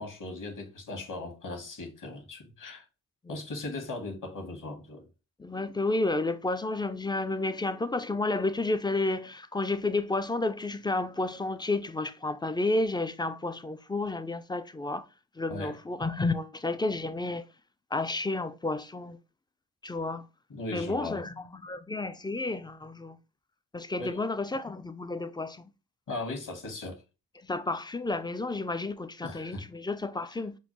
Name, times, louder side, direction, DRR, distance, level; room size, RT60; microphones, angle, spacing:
voice 1, 0.0-2.8 3.3-5.1 15.5-15.8 20.5-21.2 24.0-24.2 26.1-27.0 29.2-29.6, left 2 dB, 55° left, 1.4 m, -38 dB
voice 2, 5.4-15.1 15.4-17.5 17.9-19.2 19.8-20.3 20.7-23.2 23.7-25.7 27.4-30.6, left 2 dB, 10° left, 0.4 m, -31 dB
5.4 x 2.1 x 3.0 m
supercardioid pair, 40°, 39 cm